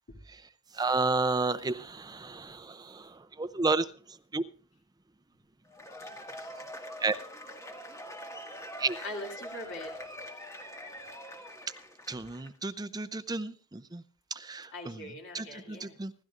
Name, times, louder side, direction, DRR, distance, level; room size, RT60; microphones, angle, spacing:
voice 1, 0.7-3.9 4.3-4.4 7.0-7.2 8.8-9.0 12.1-14.0 14.3-15.0 15.3-16.1, right 3 dB, 20° right, 12 dB, 0.5 m, -31 dB
Cheering / Applause / Crowd, 5.7-12.5, equal, 15° left, 1.8 m, -44 dB
voice 2, 9.0-10.0 14.7-16.0, left 1 dB, 60° left, 1 dB, 2.6 m, -41 dB
26.5 x 12.5 x 2.5 m, 0.39 s
head